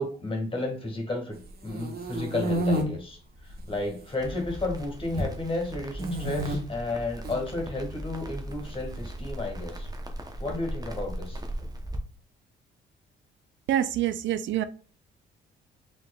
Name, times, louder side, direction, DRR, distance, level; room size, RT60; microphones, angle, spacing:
voice 1, 0.0-9.9 10.4-11.4, left 2 dB, 25° left, 2.0 m, -32 dB
sound 1, 1.4-2.8 3.5-4.1 4.4-5.3 6.0-6.6 7.1-7.4 8.5-9.4, right 1 dB, 50° right, 1.4 m, -30 dB
Crackle, 4.2-12.0, right 1 dB, 20° right, 0.9 m, -38 dB
voice 2, 13.7-14.6, right 11 dB, 70° right, 0.4 m, -26 dB
4.8 x 3.7 x 2.4 m
cardioid pair, 90°, 20 cm